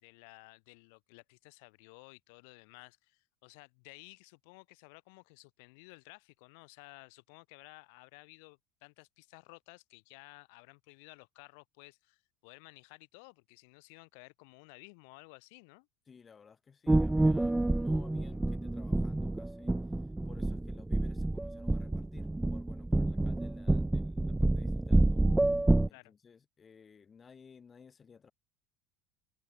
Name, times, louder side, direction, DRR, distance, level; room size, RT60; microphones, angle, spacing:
voice 1, 0.0-15.9 25.9-26.1, left 32 dB, 75° left, 3.1 m, -55 dB
voice 2, 16.1-19.7 20.3-25.3 25.9-28.3, left 6 dB, 20° left, 3.3 m, -57 dB
sound 1, 16.9-25.9, right 2 dB, 5° right, 0.5 m, -28 dB
cardioid pair, 145°, 0 cm